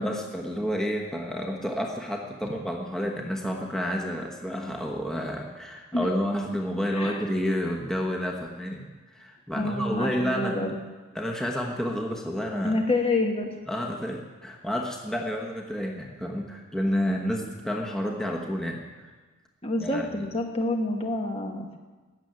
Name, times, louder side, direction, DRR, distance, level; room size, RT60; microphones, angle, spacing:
voice 1, 0.0-10.7 11.1-12.8 13.7-19.1 19.8-20.2, equal, 5° left, 0 dB, 1.2 m, -30 dB
voice 2, 6.9-7.2 9.5-10.8 12.6-13.5 19.6-21.8, left 2 dB, 25° left, 3 dB, 1.3 m, -28 dB
15.5 x 7.3 x 9.4 m, 1.3 s
head